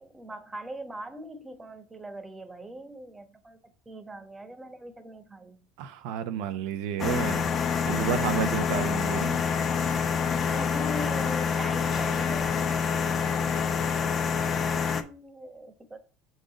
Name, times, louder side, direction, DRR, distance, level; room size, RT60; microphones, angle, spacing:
voice 1, 0.0-3.6 3.9-5.6 10.5-12.8 13.9-14.1 14.9-16.0, right 1 dB, 15° right, 1.2 m, -41 dB
voice 2, 5.8-7.5 7.9-9.4, right 8 dB, 75° right, 0.5 m, -31 dB
sound 1, 7.0-15.0, left 6 dB, 40° left, 0.8 m, -27 dB
5.0 x 3.9 x 4.9 m
supercardioid pair, 95°, 0 cm